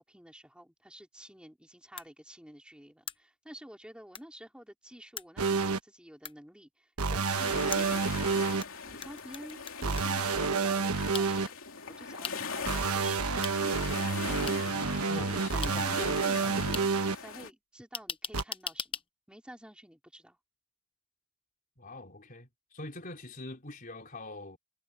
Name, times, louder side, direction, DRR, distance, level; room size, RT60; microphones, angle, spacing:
voice 1, 0.0-13.4 14.4-14.7 15.2-16.7 17.1-19.0 19.3-20.4, equal, 5° right, 4.2 m, -50 dB
sound 1, 2.0-2.1 3.1-3.2 4.1-4.2 5.2-5.3 6.2-6.3 7.7-8.7 9.0-10.2 11.1-11.3 12.2-12.3 13.4-13.5 14.5-14.6 15.6-15.7 16.7-16.8 17.9-19.0, left 7 dB, 25° left, 0.9 m, -38 dB
sound 2, 5.4-5.8 7.0-8.6 9.8-11.5 12.6-17.1 18.3-18.4, right 4 dB, 80° right, 1.2 m, -29 dB
sound 3, 7.3-17.5, left 5 dB, 65° left, 3.2 m, -41 dB
voice 2, 14.7-16.7 21.8-24.6, left 2 dB, 40° left, 4.3 m, -44 dB
head